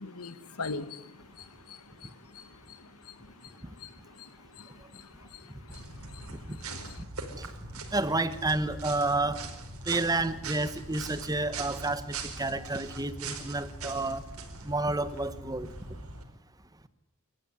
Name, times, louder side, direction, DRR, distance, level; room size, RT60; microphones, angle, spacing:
voice 1, 0.0-7.0, left 3 dB, 90° left, 14 dB, 1.7 m, -44 dB
sound 1, 5.7-16.2, right 3 dB, 80° right, 4.8 m, -41 dB
voice 2, 7.9-9.4 9.9-14.2 14.6-15.7, right 2 dB, 15° right, 13 dB, 1.3 m, -30 dB
28.0 x 14.5 x 9.9 m, 0.96 s
head